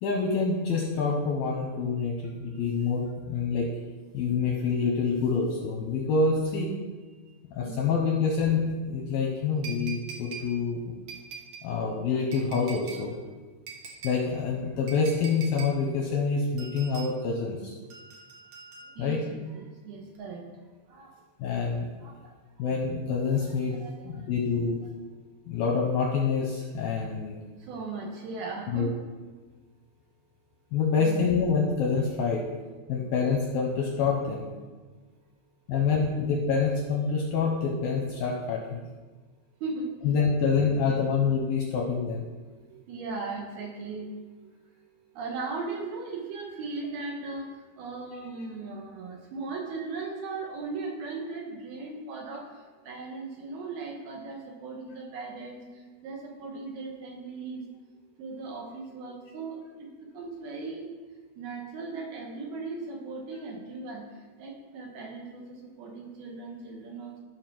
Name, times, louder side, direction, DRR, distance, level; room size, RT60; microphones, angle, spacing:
voice 1, 0.0-3.7 4.1-6.7 7.6-10.8 11.6-13.1 14.0-17.7 19.0-19.2 21.4-21.9 22.6-23.8 24.0-24.8 25.5-27.4 28.7-28.9 30.7-32.4 32.9-34.4 35.7-38.8 40.1-42.2, left 5 dB, 75° left, 0 dB, 2.2 m, -26 dB
sound 1, 9.6-10.5 11.1-11.7 12.3-13.0 13.7-14.2 14.9-15.7 16.6-17.1 17.9-19.1 20.1-20.2, right 6 dB, 85° right, 1.3 m, -43 dB
voice 2, 19.0-20.4 20.9-21.1 22.0-22.3 23.3-24.5 27.7-29.0 31.0-31.2 39.6-39.9 40.5-41.0 42.7-44.2 45.2-47.5 47.8-52.4 52.9-55.6 56.0-57.6 58.2-59.9 60.1-60.9 61.4-64.0 64.4-67.1, right 3 dB, 65° right, 0 dB, 2.9 m, -38 dB
13.0 x 4.8 x 6.0 m, 1.3 s
omnidirectional pair, 5.2 m